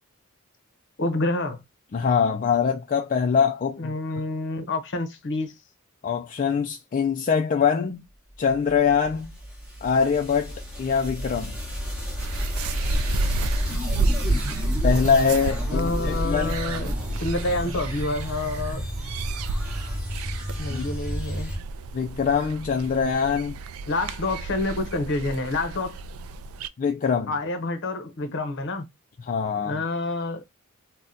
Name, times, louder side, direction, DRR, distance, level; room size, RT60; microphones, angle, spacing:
voice 1, 1.0-1.6 3.8-5.5 15.7-18.8 20.6-21.5 23.9-26.0 27.3-28.9 29.6-30.4, left 2 dB, 55° left, 0.8 m, -28 dB
voice 2, 1.9-3.9 6.0-8.0 8.4-9.3 9.8-11.6 14.8-16.5 20.7-20.8 21.9-23.6 26.8-27.3 29.3-29.8, left 6 dB, 40° left, 0.4 m, -23 dB
sound 1, 8.7-21.6, equal, 5° right, 1.1 m, -29 dB
sound 2, 12.2-26.7, right 3 dB, 80° right, 0.3 m, -32 dB
2.8 x 2.1 x 3.7 m
head